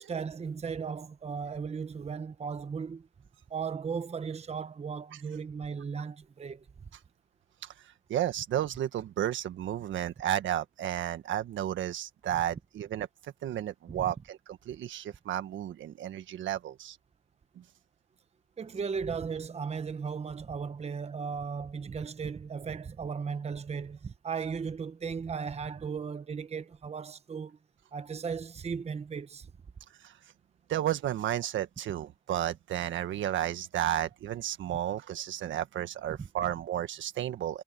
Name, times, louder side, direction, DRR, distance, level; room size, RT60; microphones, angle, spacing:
voice 1, 0.1-3.1 3.5-6.7 13.9-14.1 18.6-27.6 27.9-29.5 36.2-36.3, right 6 dB, 30° right, 1.0 m, -36 dB
voice 2, 8.1-13.1 13.4-17.0 17.5-17.6 30.0-30.1 30.7-37.6, right 11 dB, 75° right, 1.6 m, -32 dB
cardioid pair, 90°, 20 cm